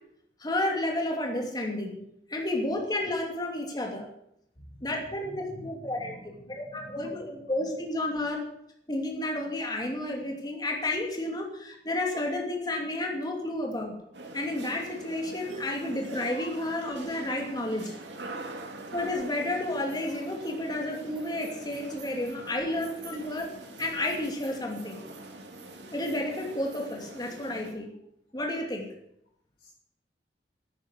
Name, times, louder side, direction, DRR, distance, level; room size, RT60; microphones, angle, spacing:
voice 1, 0.4-2.0 2.3-4.1 4.8-6.1 6.5-8.5 8.9-13.9 14.3-17.9 18.9-23.5 23.8-25.0 25.9-27.9 28.3-28.9, left 1 dB, 25° left, 1 dB, 2.8 m, -31 dB
voice 2, 4.6-4.9 5.2-7.2 29.6-29.7, left 1 dB, 60° left, -5 dB, 5.9 m, -48 dB
sound 1, 14.1-27.7, right 2 dB, 85° right, 2.5 m, -43 dB
12.0 x 9.7 x 8.2 m, 0.74 s
head